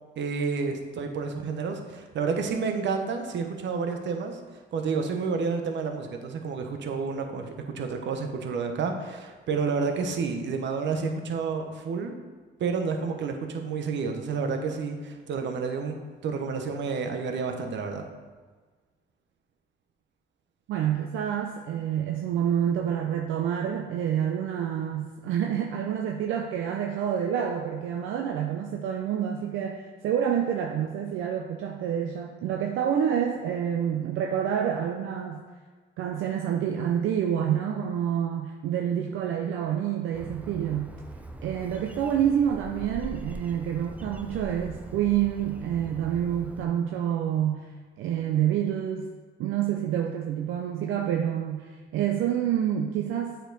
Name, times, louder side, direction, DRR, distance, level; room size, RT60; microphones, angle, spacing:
voice 1, 0.2-12.1 12.6-16.0 16.2-18.1, right 5 dB, 65° right, 4 dB, 0.9 m, -30 dB
voice 2, 20.7-35.4 36.0-40.9 41.4-47.7 48.0-49.1 49.4-53.4, right 9 dB, 85° right, 2 dB, 0.5 m, -28 dB
Bird, 40.1-46.6, right 1 dB, 5° right, 0.5 m, -42 dB
8.0 x 4.5 x 3.9 m, 1.4 s
cardioid pair, 90°, 20 cm